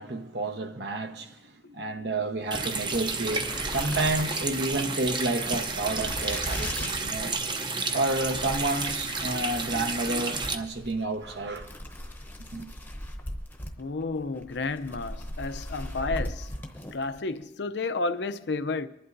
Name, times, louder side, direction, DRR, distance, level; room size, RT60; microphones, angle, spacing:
voice 1, 0.0-7.4 7.9-11.7 12.5-12.7, right 2 dB, 70° right, 1.0 m, -30 dB
sound 1, 2.4-17.3, left 1 dB, 10° left, 0.8 m, -39 dB
Water tap faucet, 2.5-10.5, right 4 dB, 25° right, 0.6 m, -31 dB
voice 2, 13.8-16.5 16.9-18.9, left 3 dB, 70° left, 0.6 m, -31 dB
24.0 x 11.5 x 2.6 m
head